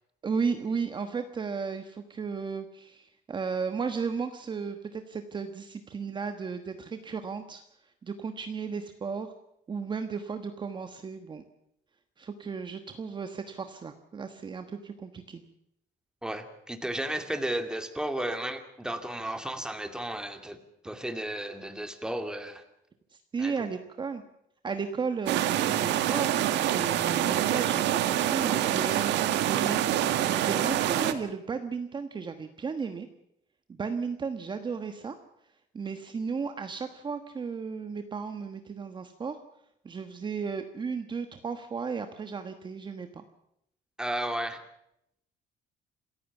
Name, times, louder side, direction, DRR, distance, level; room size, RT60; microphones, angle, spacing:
voice 1, 0.2-7.6 8.0-9.3 9.7-11.4 12.2-15.4 23.3-24.2 24.6-26.3 26.7-33.1 33.7-35.2 35.7-39.4 39.8-43.2, right 5 dB, 25° right, 8 dB, 1.3 m, -34 dB
voice 2, 16.2-20.6 20.8-22.6 23.4-23.5 44.0-44.6, right 1 dB, 5° right, 7 dB, 2.2 m, -33 dB
sound 1, 25.3-31.1, right 12 dB, 90° right, 1.8 m, -26 dB
27.5 x 15.5 x 7.2 m, 0.78 s
cardioid pair, 150°, 18 cm